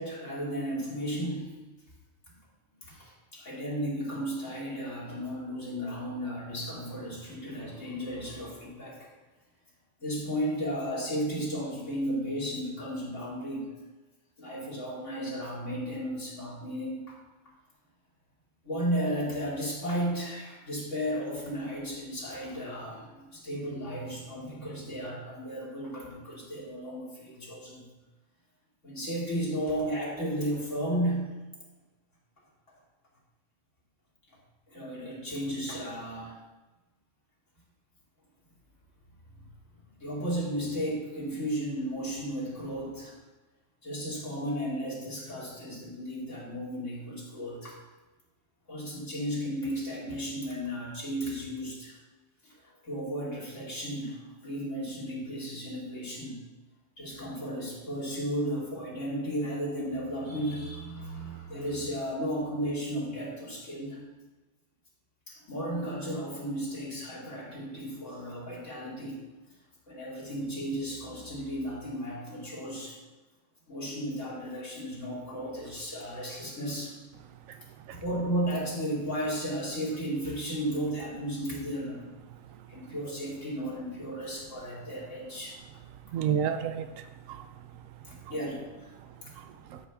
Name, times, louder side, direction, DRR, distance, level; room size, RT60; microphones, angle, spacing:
voice 1, 0.0-1.5 2.9-9.1 10.0-13.7 14.4-17.2 18.6-27.9 28.8-31.3 34.7-36.4 40.0-43.1 43.8-47.8 48.7-52.0 52.4-56.4 57.0-64.0 65.3-69.2 69.9-73.0 73.7-76.9 78.0-82.0 82.7-85.8 88.1-88.9 89.2-89.3, equal, 70° left, -6 dB, 2.9 m, -34 dB
voice 2, 86.1-87.5 89.4-89.8, right 8 dB, 85° right, 9 dB, 1.0 m, -31 dB
12.5 x 5.8 x 3.5 m, 1.1 s
omnidirectional pair, 1.3 m